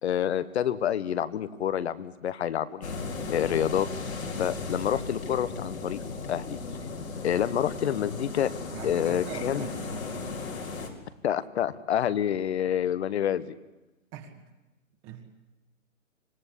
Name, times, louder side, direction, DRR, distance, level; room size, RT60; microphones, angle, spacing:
voice 1, 0.0-3.0 3.3-3.9 4.4-6.0 6.3-6.6 7.2-8.5 8.8-9.6 11.2-13.5, left 10 dB, 50° left, 15 dB, 1.3 m, -28 dB
sound 1, 2.8-10.9, left 4 dB, 85° left, 4.5 m, -36 dB
voice 2, 8.7-10.2 12.3-12.4 14.1-14.4 15.0-15.3, right 8 dB, 25° right, 5 dB, 2.0 m, -42 dB
26.0 x 19.0 x 8.3 m, 1.0 s
hypercardioid pair, 140°, 41 cm